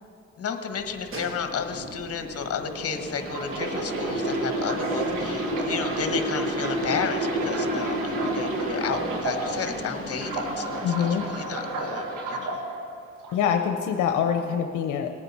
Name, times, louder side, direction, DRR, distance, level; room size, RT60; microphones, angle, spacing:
voice 1, 0.4-12.6, left 6 dB, 50° left, 7 dB, 1.3 m, -32 dB
starting-up-device, 0.7-12.3, equal, 45° right, 1.9 m, -37 dB
sound 1, 3.2-9.7 10.1-12.6 13.2-13.5, right 2 dB, 90° right, 1.7 m, -29 dB
voice 2, 10.8-11.2 13.3-15.1, left 8 dB, 80° left, 5 dB, 0.7 m, -24 dB
19.0 x 8.9 x 4.2 m, 2.5 s
cardioid pair, 90°, 30 cm